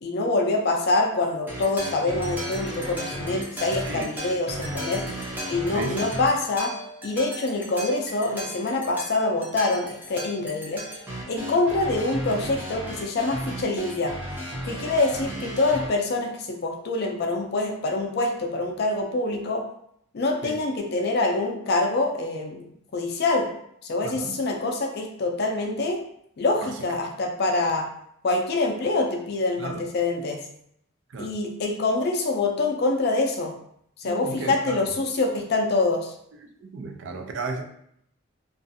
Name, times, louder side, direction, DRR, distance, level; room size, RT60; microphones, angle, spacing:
voice 1, 0.0-5.1 5.5-6.7 7.0-10.8 11.3-14.1 14.6-19.6 20.1-22.6 22.9-23.5 23.9-26.0 26.4-27.9 28.2-30.4 31.2-33.5 34.0-36.1, left 2 dB, 55° left, 2 dB, 0.4 m, -25 dB
sound 1, 1.5-15.9, equal, 10° right, 0.5 m, -35 dB
voice 2, 5.7-6.1 20.4-20.6 24.0-24.4 26.6-26.7 29.6-29.8 31.1-31.4 34.0-34.8 36.4-37.6, right 3 dB, 65° right, 4 dB, 0.4 m, -34 dB
2.5 x 2.3 x 2.6 m, 0.71 s
head